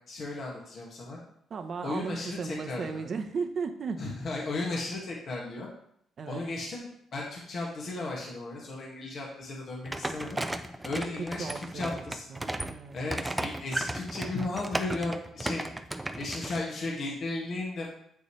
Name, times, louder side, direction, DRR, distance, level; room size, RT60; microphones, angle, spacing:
voice 1, 0.1-1.2 1.8-3.0 4.0-5.7 6.3-10.4 10.8-12.3 12.9-15.6 16.2-17.9, left 2 dB, 55° left, -3 dB, 2.0 m, -35 dB
voice 2, 1.5-4.0 6.2-6.4 11.2-12.0 12.3-13.0, right 5 dB, 50° right, 7 dB, 0.9 m, -35 dB
sound 1, 9.9-16.6, right 1 dB, 10° right, 0.6 m, -35 dB
8.2 x 6.7 x 3.2 m, 0.71 s
cardioid pair, 90°, 0 cm